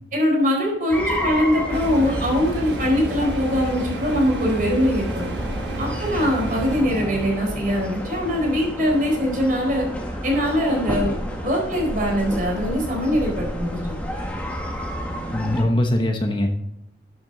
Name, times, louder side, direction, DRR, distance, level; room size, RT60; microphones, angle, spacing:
voice 1, 0.1-5.3 5.8-9.9 10.2-11.1 11.4-14.0, equal, 50° right, 0 dB, 4.3 m, -22 dB
sound 1, 0.9-15.6, equal, 10° left, 1.5 m, -30 dB
sound 2, 1.7-6.8, right 1 dB, 75° right, 1.3 m, -31 dB
voice 2, 15.3-16.7, left 1 dB, 25° left, 4 dB, 1.0 m, -22 dB
12.0 x 7.9 x 4.0 m, 0.79 s
head